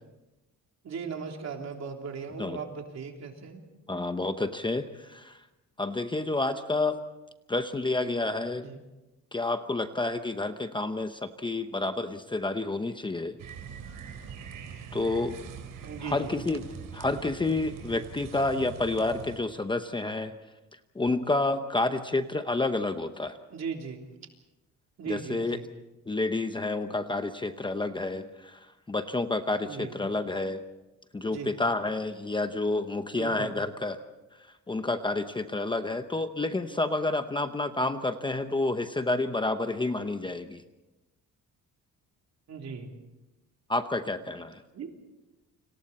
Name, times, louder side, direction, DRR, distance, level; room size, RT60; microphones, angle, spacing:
voice 1, 0.8-3.6 8.6-8.8 15.8-16.4 23.5-24.0 25.0-25.7 29.6-29.9 31.3-31.6 33.1-33.5 42.5-43.0 44.7-44.9, right 5 dB, 55° right, 2 dB, 3.4 m, -38 dB
voice 2, 3.9-5.4 5.8-7.0 7.5-8.7 9.3-13.4 14.9-15.4 16.0-16.6 16.9-20.3 20.9-23.4 25.1-25.6 26.1-28.6 28.9-30.6 31.1-34.0 34.7-40.6 43.7-44.6, left 2 dB, 15° left, 8 dB, 0.8 m, -29 dB
sound 1, 13.4-19.4, right 7 dB, 75° right, 4.0 m, -43 dB
30.0 x 26.5 x 4.3 m, 1.0 s
cardioid pair, 160°, 32 cm